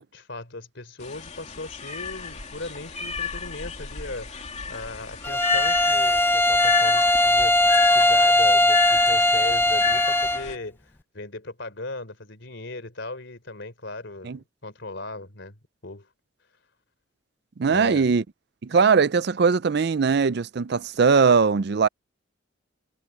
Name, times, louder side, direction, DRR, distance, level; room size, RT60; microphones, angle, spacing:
voice 1, 0.0-15.6 15.8-16.1 17.7-18.0, left 2 dB, 65° left, 4.0 m, -38 dB
sound 1, 1.0-10.6, left 7 dB, 35° left, 2.9 m, -32 dB
Bowed string instrument, 5.2-10.5, left 1 dB, 10° left, 0.4 m, -19 dB
voice 2, 17.6-18.2 18.6-21.9, right 5 dB, 55° right, 0.5 m, -20 dB
head